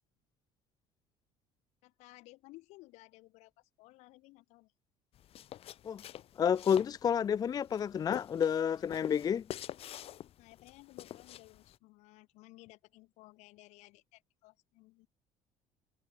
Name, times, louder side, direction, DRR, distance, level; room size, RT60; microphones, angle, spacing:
voice 1, 1.8-4.7 10.4-15.1, left 21 dB, 80° left, 3.7 m, -57 dB
sound 1, 5.1-11.8, left 12 dB, 55° left, 3.3 m, -47 dB
voice 2, 6.4-9.5, left 8 dB, 35° left, 0.5 m, -30 dB
cardioid pair, 115°, 12 cm